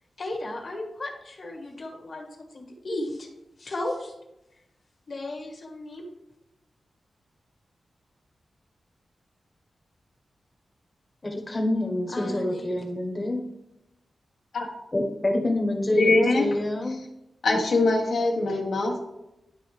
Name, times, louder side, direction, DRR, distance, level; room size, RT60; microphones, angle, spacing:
voice 1, 0.2-3.3 3.6-4.1 5.1-6.1 12.1-12.7, left 1 dB, 50° left, 1 dB, 1.4 m, -35 dB
voice 2, 11.2-13.4 14.9-17.0, left 1 dB, 25° left, 2 dB, 1.1 m, -26 dB
voice 3, 15.9-16.4 17.4-19.0, left 2 dB, 80° left, -1 dB, 1.5 m, -22 dB
11.0 x 3.8 x 3.2 m, 0.91 s
wide cardioid pair, 120°, 0 cm